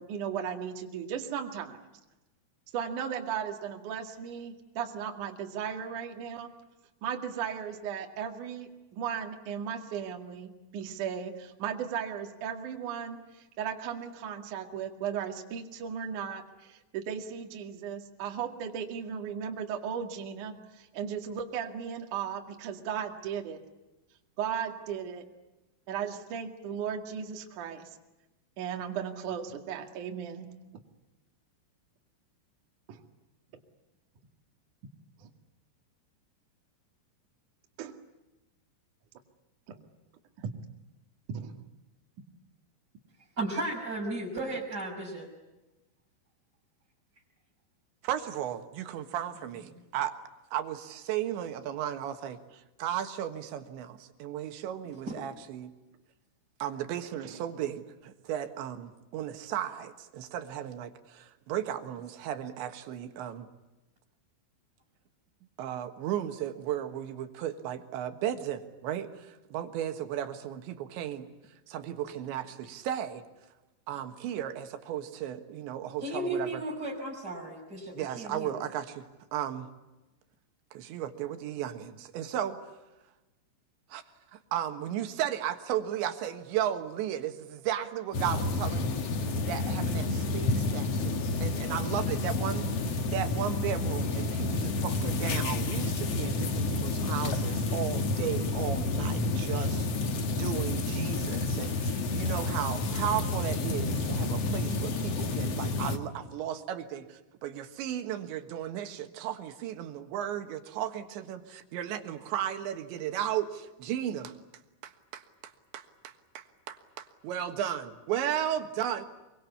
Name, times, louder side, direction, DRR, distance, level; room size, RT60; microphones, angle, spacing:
voice 1, 0.0-1.8 2.7-6.5 7.0-23.6 24.4-25.3 25.9-27.9 28.6-30.5 32.9-33.0 35.2-35.3 37.8-38.0 39.7-39.8 40.4-40.5 41.3-41.5, right 8 dB, 50° right, 3 dB, 2.8 m, -36 dB
voice 2, 43.4-45.3 49.7-49.8 55.1-55.2 73.9-74.0 76.0-78.5, right 2 dB, 20° right, -6 dB, 5.9 m, -35 dB
voice 3, 48.0-50.1 50.5-55.7 56.6-63.5 65.6-71.3 71.7-73.2 73.9-76.6 77.9-79.7 80.7-82.6 83.9-84.0 84.3-89.0 89.5-114.3 114.8-119.1, right 10 dB, 70° right, 8 dB, 3.5 m, -35 dB
sound 1, 88.1-106.0, left 2 dB, 80° left, 1.4 m, -30 dB
25.5 x 23.5 x 8.4 m, 1.1 s
omnidirectional pair, 5.9 m